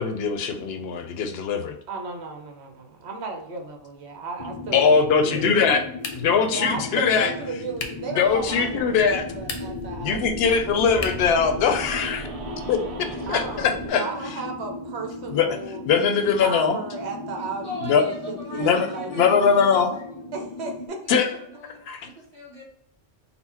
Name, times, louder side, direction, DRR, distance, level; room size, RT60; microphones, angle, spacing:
voice 1, 0.0-1.7 4.7-5.8 6.2-7.3 8.2-9.3 10.0-12.3 12.7-14.0 15.3-15.5 15.9-16.8 17.8-18.0 18.6-19.9 21.1-21.3 21.9-22.1, left 6 dB, 65° left, 7 dB, 0.8 m, -21 dB
voice 2, 1.9-5.8 6.5-11.1 13.3-15.8 16.4-19.5 20.3-21.4, right 4 dB, 70° right, 3 dB, 1.0 m, -35 dB
sound 1, 4.4-20.9, left 3 dB, 40° left, 0.4 m, -37 dB
sound 2, 6.0-6.5 7.8-8.1 9.3-9.9 11.0-11.4, left 4 dB, 85° left, 1.0 m, -35 dB
sound 3, 8.2-13.9, right 3 dB, 45° right, 0.4 m, -38 dB
voice 3, 17.4-20.2 21.2-22.6, left 1 dB, 25° right, -7 dB, 1.4 m, -40 dB
4.3 x 2.0 x 4.2 m, 0.72 s
omnidirectional pair, 1.2 m